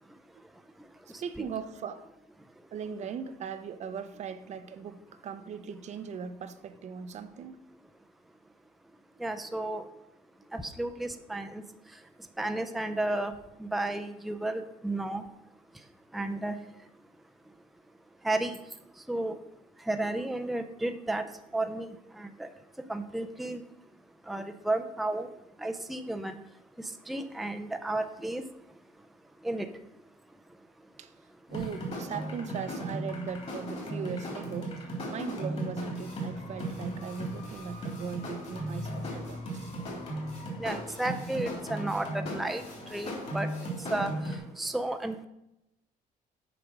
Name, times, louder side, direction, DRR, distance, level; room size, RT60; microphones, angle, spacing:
voice 1, 1.1-2.1 2.7-7.6 31.0-31.1 31.5-39.7, right 6 dB, 50° right, 0.7 m, -39 dB
voice 2, 9.2-9.8 10.5-11.6 12.4-13.3 13.6-15.2 16.1-16.5 18.2-18.5 19.1-19.4 19.9-21.2 21.5-21.9 22.2-22.3 22.9-23.6 24.3-25.3 25.6-26.3 27.1-28.4 29.4-29.7 40.6-42.6 42.9-43.5 43.9-44.1 44.6-45.2, right 2 dB, ahead, 0.5 m, -32 dB
sound 1, 31.5-44.4, right 1 dB, 45° left, 3.3 m, -37 dB
8.1 x 5.1 x 6.0 m
cardioid pair, 130°, 15 cm